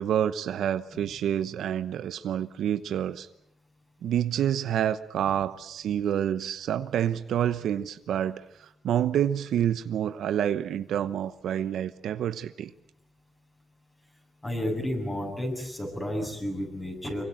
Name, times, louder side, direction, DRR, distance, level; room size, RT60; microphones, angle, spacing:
voice 1, 0.0-3.3 4.0-12.7, right 10 dB, 80° right, 12 dB, 1.0 m, -28 dB
voice 2, 14.4-17.2, left 1 dB, 20° left, 1 dB, 7.6 m, -31 dB
25.5 x 23.0 x 8.9 m, 0.78 s
cardioid pair, 120°, 0 cm